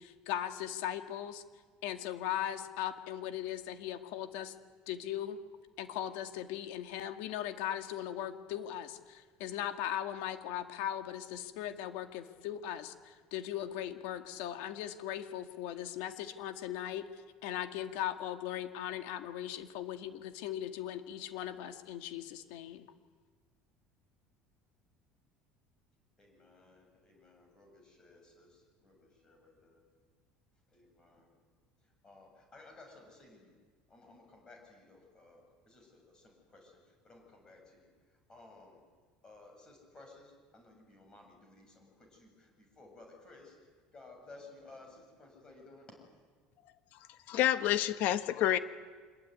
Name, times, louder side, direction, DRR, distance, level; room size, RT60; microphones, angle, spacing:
voice 1, 0.0-1.4 1.8-4.5 4.9-5.4 5.8-17.1 17.4-22.9, left 11 dB, 75° left, 7 dB, 2.1 m, -38 dB
voice 2, 26.2-29.8 30.7-31.3 32.0-33.5 33.9-36.8 37.0-37.9 38.3-38.8 39.2-43.5 43.9-45.9, left 2 dB, 20° left, 3 dB, 7.4 m, -57 dB
voice 3, 47.3-48.6, left 12 dB, 55° left, 11 dB, 1.4 m, -28 dB
26.0 x 21.5 x 9.6 m, 1.5 s
cardioid pair, 165°, 4 cm